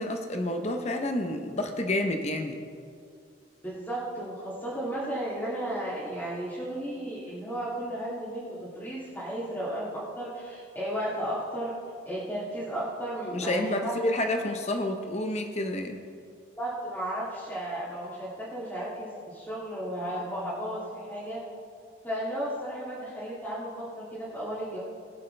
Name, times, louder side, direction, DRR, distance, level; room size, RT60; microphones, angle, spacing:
voice 1, 0.0-2.6 13.3-16.0, left 1 dB, 35° left, 5 dB, 0.8 m, -29 dB
voice 2, 3.6-11.7 12.0-14.0 16.6-21.4 22.0-24.8, right 1 dB, 10° left, -11 dB, 2.5 m, -34 dB
21.0 x 7.2 x 3.4 m, 2.3 s
head